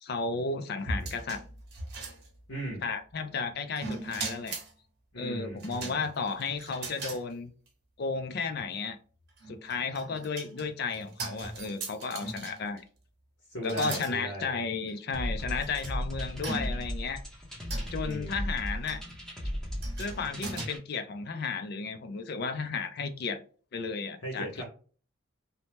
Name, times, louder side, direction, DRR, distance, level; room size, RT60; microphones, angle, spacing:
voice 1, 0.0-1.4 2.8-4.6 5.2-7.5 8.0-9.0 9.5-12.8 13.6-17.2 17.9-19.0 20.0-23.4 23.7-24.6, left 4 dB, 50° left, 9 dB, 0.4 m, -33 dB
sound 1, 0.8-2.7 3.8-4.7 5.6-7.2 7.7-7.8 9.3-12.8 13.6-14.1 14.9-15.0 15.6-15.9 16.4-17.0 17.7-18.1 18.9-19.1 19.8-20.7, right 3 dB, 50° right, 0.8 m, -39 dB
voice 2, 2.5-2.8 5.1-6.0 13.5-14.6 18.0-18.5 24.2-24.6, right 1 dB, 70° left, -4 dB, 1.0 m, -38 dB
sound 2, 15.1-20.8, equal, 5° left, 0.7 m, -36 dB
2.7 x 2.1 x 3.1 m, 0.41 s
head